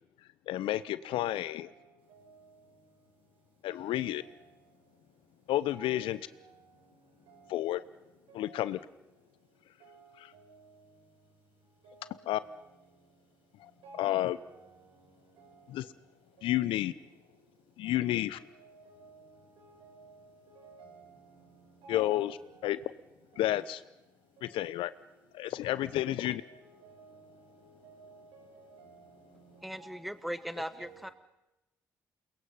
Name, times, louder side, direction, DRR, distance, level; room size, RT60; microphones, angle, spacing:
voice 1, 0.5-1.7 3.6-4.2 5.5-6.3 7.5-7.8 8.3-8.8 10.2-10.3 12.2-12.4 13.6-14.4 15.7-15.9 16.4-16.9 17.8-18.4 21.9-22.9 23.4-23.8 24.4-24.9 25.3-26.4, left 14 dB, 70° left, 0.9 m, -31 dB
voice 2, 5.7-6.5 7.3-7.6 8.3-8.4 9.8-10.5 11.8-12.1 12.4-12.5 13.8-14.7 15.4-15.6 17.9-18.1 18.6-19.2 19.6-20.1 20.5-21.2 21.8-22.1 22.3-22.6 23.3-23.5 25.9-26.5 26.8-27.2 27.8-29.1 29.8-29.9 30.5-31.1, right 4 dB, 70° right, 6.3 m, -55 dB
voice 3, 29.6-31.1, equal, ahead, 1.2 m, -38 dB
28.5 x 22.0 x 5.8 m
hypercardioid pair, 40°, 9 cm